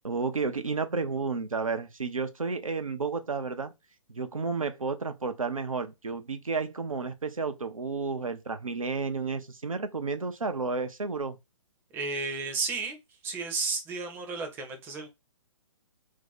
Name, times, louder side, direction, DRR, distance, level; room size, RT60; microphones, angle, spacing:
voice 1, 0.0-3.7 4.1-11.4, right 4 dB, 85° right, 0.6 m, -31 dB
voice 2, 11.9-13.0 13.2-15.1, right 4 dB, 10° right, 0.6 m, -32 dB
2.7 x 2.1 x 3.8 m
figure-of-eight pair, 130°, 17 cm